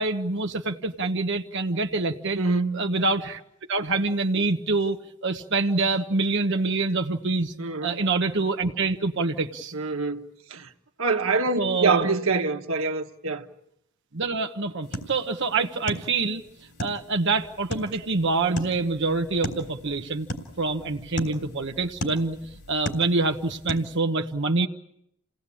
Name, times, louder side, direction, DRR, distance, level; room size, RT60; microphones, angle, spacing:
voice 1, 0.0-2.4 2.7-3.4 3.7-7.5 7.8-9.7 11.6-12.1 14.1-16.4 16.8-20.3 20.6-24.7, right 3 dB, 60° right, 1.1 m, -26 dB
voice 2, 2.4-2.8 7.6-8.0 9.7-10.2 10.5-10.7 11.0-13.4, right 3 dB, 75° right, 1.6 m, -25 dB
sound 1, 14.8-24.0, equal, 55° left, 3.5 m, -38 dB
29.0 x 18.0 x 8.6 m
head